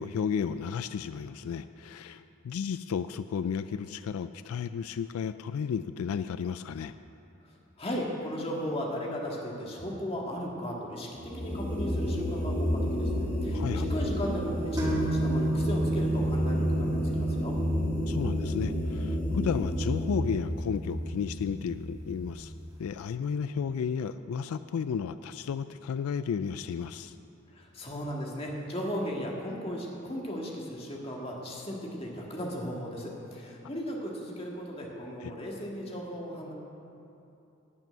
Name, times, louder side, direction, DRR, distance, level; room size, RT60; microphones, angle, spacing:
voice 1, 0.0-6.9 13.5-13.9 18.1-22.5 22.8-27.2 35.2-35.3, left 6 dB, 85° left, 12 dB, 0.3 m, -33 dB
voice 2, 7.8-17.5 27.5-36.5, equal, 25° left, -2 dB, 1.8 m, -36 dB
sound 1, 11.2-22.5, equal, 10° left, 2.8 m, -31 dB
sound 2, 14.8-22.3, right 1 dB, 20° right, 2.0 m, -32 dB
12.5 x 6.0 x 9.0 m, 2.9 s
head